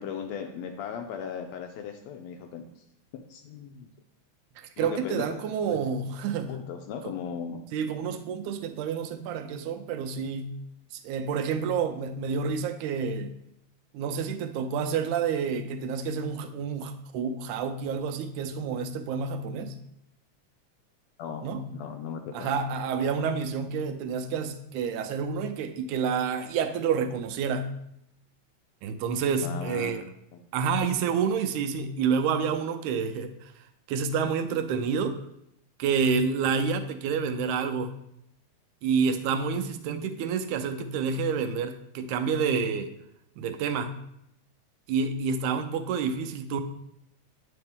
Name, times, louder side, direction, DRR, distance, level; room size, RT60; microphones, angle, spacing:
voice 1, 0.0-2.8 3.1-3.9 4.8-5.8 6.5-7.6 21.2-22.5 29.4-29.9 30.3-30.4, left 7 dB, 80° left, 5 dB, 1.6 m, -37 dB
voice 2, 4.6-6.6 7.7-10.5 10.9-13.3 13.9-19.7 21.4-21.6 22.3-27.7 28.8-30.0 30.5-33.5 33.9-35.2 35.8-38.0 38.8-42.9 43.4-43.9 44.9-46.6, right 6 dB, 85° right, 9 dB, 2.0 m, -29 dB
8.7 x 4.3 x 3.5 m, 0.77 s
omnidirectional pair, 3.4 m